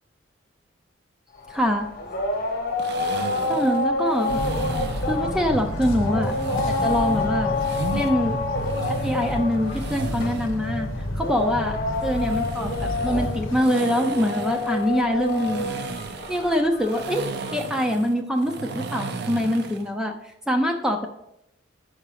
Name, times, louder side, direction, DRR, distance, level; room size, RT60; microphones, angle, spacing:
sound 1, 1.4-17.7, left 2 dB, 45° left, 1.1 m, -29 dB
voice 1, 1.5-1.9 3.5-4.4 5.0-6.3 6.7-7.6 7.9-8.4 8.9-10.9 11.2-11.8 12.0-12.7 13.0-15.8 16.3-20.1 20.5-21.1, equal, 5° right, 3 dB, 0.5 m, -24 dB
sound 2, 2.8-5.2 6.3-8.1 8.6-10.6 12.0-19.9, right 4 dB, 55° right, 0.5 m, -35 dB
sound 3, 4.3-13.6, equal, 85° left, 0.9 m, -31 dB
5.8 x 4.9 x 5.7 m, 0.81 s
head